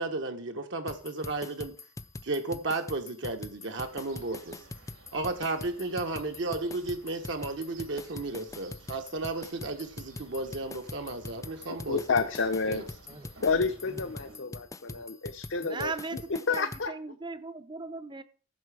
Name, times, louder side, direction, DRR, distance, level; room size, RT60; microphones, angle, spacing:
voice 1, 0.0-1.7 2.2-4.6 5.1-12.0 12.7-12.8, right 2 dB, 60° right, 1.0 m, -33 dB
sound 1, 0.9-16.9, left 2 dB, 15° left, 0.4 m, -43 dB
sound 2, 3.7-14.4, right 2 dB, 75° right, 2.6 m, -55 dB
voice 2, 11.9-12.8 13.4-16.2 16.5-16.9, left 4 dB, 65° left, 0.8 m, -29 dB
voice 3, 13.9-14.7 14.9-15.1 15.6-18.2, right 3 dB, 20° right, 0.7 m, -39 dB
15.0 x 6.7 x 4.8 m
head